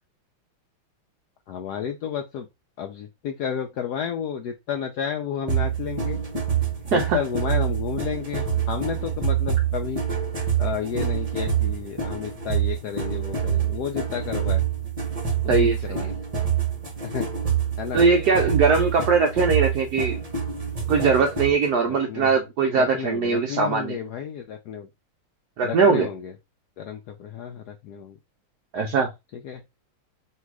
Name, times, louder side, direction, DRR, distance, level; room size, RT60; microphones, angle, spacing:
voice 1, 1.5-2.5 2.8-6.2 6.9-10.0 10.6-14.6 15.4-16.1 17.0-17.3 17.8-18.0 21.8-22.3 22.7-24.9 25.6-26.3 26.8-28.2 29.4-29.6, left 8 dB, 85° left, 0.8 m, -31 dB
sound 1, 5.5-21.7, right 8 dB, 30° right, 0.7 m, -26 dB
voice 2, 15.5-16.0 17.9-20.2 20.9-24.0 25.6-26.1 28.7-29.1, right 5 dB, 75° right, 0.9 m, -21 dB
3.2 x 2.8 x 4.6 m
omnidirectional pair, 2.3 m